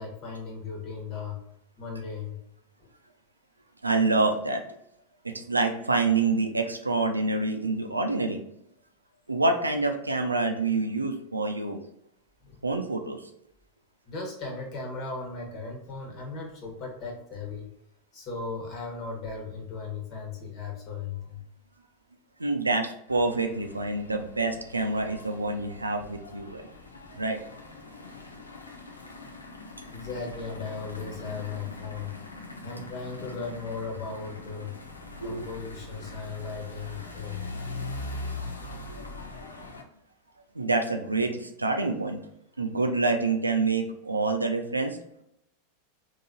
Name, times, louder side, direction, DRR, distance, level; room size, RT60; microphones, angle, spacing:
voice 1, 0.0-1.4 1.8-2.4 2.8-2.9 12.4-12.6 14.0-17.7 18.1-21.4 29.9-32.2 32.6-34.7 35.2-37.5, left 4 dB, 40° left, 0 dB, 1.3 m, -37 dB
voice 2, 3.8-4.6 5.2-8.4 9.3-11.8 12.6-13.2 22.4-26.7 27.1-27.4 35.2-35.5 40.6-42.2 42.6-45.0, right 3 dB, 90° right, 5 dB, 0.4 m, -27 dB
sound 1, 23.1-39.8, left 2 dB, 85° left, 0.5 m, -42 dB
3.9 x 2.6 x 2.7 m, 0.79 s
figure-of-eight pair, 90°, 0 cm